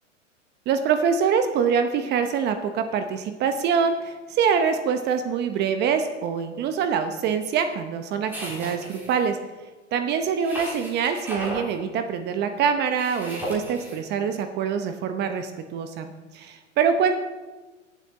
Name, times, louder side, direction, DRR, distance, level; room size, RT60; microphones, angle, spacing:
voice 1, 0.7-9.4 9.9-17.1, right 6 dB, 25° right, 8 dB, 0.8 m, -24 dB
sound 1, 8.3-9.2 10.4-11.7 13.0-14.0, right 1 dB, 5° right, 3.4 m, -35 dB
22.5 x 7.5 x 4.0 m, 1.2 s
hypercardioid pair, 130°, 38 cm